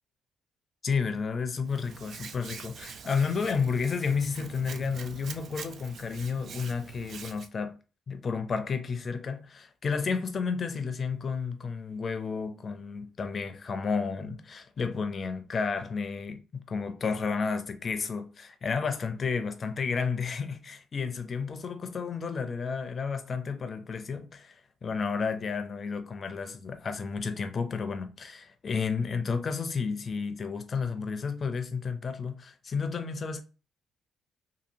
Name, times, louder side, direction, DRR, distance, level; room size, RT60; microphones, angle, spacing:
voice 1, 0.8-7.7 8.1-24.5 24.8-33.4, left 5 dB, 45° left, 0.5 m, -31 dB
Hands, 1.7-7.5, right 6 dB, 60° right, 0.4 m, -44 dB
2.8 x 2.7 x 2.6 m
cardioid pair, 90°, 0 cm